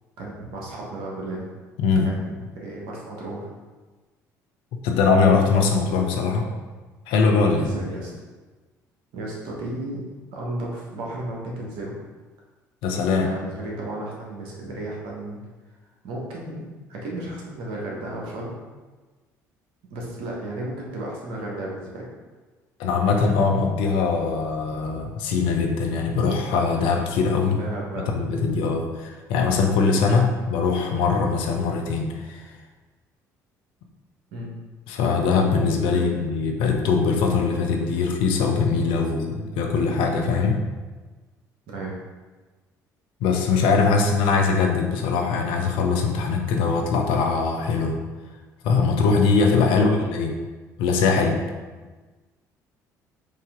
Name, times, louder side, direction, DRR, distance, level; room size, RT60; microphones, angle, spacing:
voice 1, 0.2-1.5 2.0-3.5 7.5-8.1 9.1-11.9 13.2-15.4 16.0-16.6 16.9-18.5 19.9-22.0 27.6-28.1 28.5-28.6 34.3-34.5 35.9-36.2 41.7-42.0 49.7-50.0, right 1 dB, 70° right, -3 dB, 1.2 m, -33 dB
voice 2, 1.8-2.1 4.8-6.5 7.1-7.7 12.8-13.3 22.8-27.6 28.1-32.4 34.9-40.6 43.2-48.0 48.6-50.3 50.8-51.4, left 4 dB, 70° left, 2 dB, 0.6 m, -21 dB
4.9 x 2.7 x 3.6 m, 1.3 s
hypercardioid pair, 55°, 9 cm